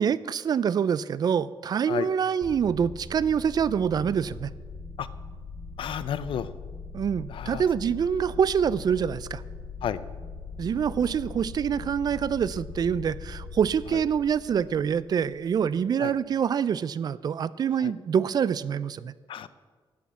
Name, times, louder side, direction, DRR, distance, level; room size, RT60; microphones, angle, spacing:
voice 1, 0.0-4.5 6.9-9.4 10.6-19.1, right 7 dB, 50° right, 18 dB, 0.3 m, -26 dB
sound 1, 2.4-15.7, left 4 dB, 50° left, 1.5 m, -41 dB
voice 2, 5.8-6.5 7.3-7.6 9.8-10.0 16.0-16.1 17.8-17.9 19.3-19.5, left 9 dB, 70° left, 15 dB, 0.5 m, -31 dB
11.5 x 6.4 x 8.2 m, 1.5 s
wide cardioid pair, 155°, 9 cm